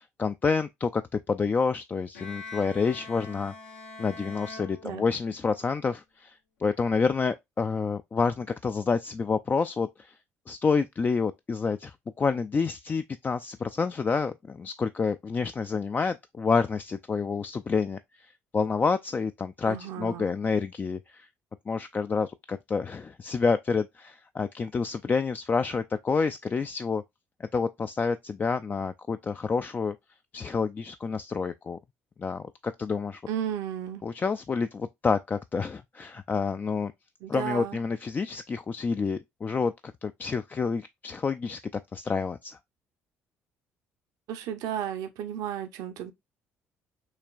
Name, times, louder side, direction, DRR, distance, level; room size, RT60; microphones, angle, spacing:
voice 1, 0.0-3.5 4.0-6.3 6.6-10.1 10.5-21.3 21.7-27.0 27.5-29.9 30.3-31.8 32.2-33.2 34.0-36.9 37.3-39.7 40.0-41.6 41.9-42.6, left 5 dB, 25° left, 0.3 m, -28 dB
Bowed string instrument, 2.1-5.5, left 3 dB, 75° left, 1.1 m, -44 dB
voice 2, 19.7-20.3 33.3-34.0 37.2-37.8 44.3-46.1, right 10 dB, 60° right, 0.6 m, -33 dB
6.3 x 2.9 x 2.4 m
figure-of-eight pair, 50°, 7 cm